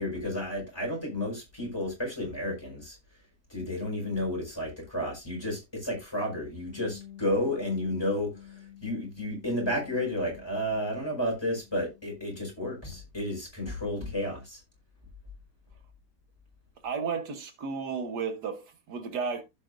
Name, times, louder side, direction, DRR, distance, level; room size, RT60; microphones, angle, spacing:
voice 1, 0.0-3.0 3.5-14.6, left 1 dB, 15° left, 4.7 m, -32 dB
Bass guitar, 6.7-12.9, left 11 dB, 55° left, 4.1 m, -51 dB
voice 2, 16.8-19.4, right 5 dB, 75° right, 1.8 m, -33 dB
16.0 x 5.5 x 2.5 m
omnidirectional pair, 1.8 m